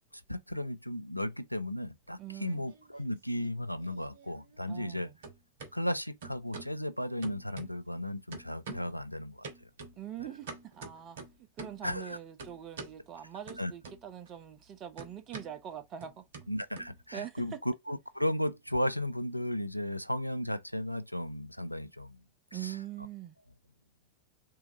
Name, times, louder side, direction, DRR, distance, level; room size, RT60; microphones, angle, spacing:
voice 1, 0.1-5.1 5.7-9.7 10.2-10.3 11.8-12.2 13.6-13.7 16.5-22.2 22.5-22.8, left 1 dB, 90° left, 0.4 m, -35 dB
sound 1, 2.1-3.1 3.4-5.0 5.2-5.7 6.2-6.8 7.2-8.0 8.3-9.0 9.4-11.9 12.4-13.0 13.5-14.3 14.6-17.4, right 4 dB, 60° right, 1.2 m, -47 dB
voice 2, 2.2-2.7 4.7-5.1 9.9-11.2 11.6-16.2 17.1-17.6 22.5-23.3, right 10 dB, 30° right, 0.9 m, -43 dB
3.9 x 3.5 x 3.8 m
figure-of-eight pair, 90°, 0 cm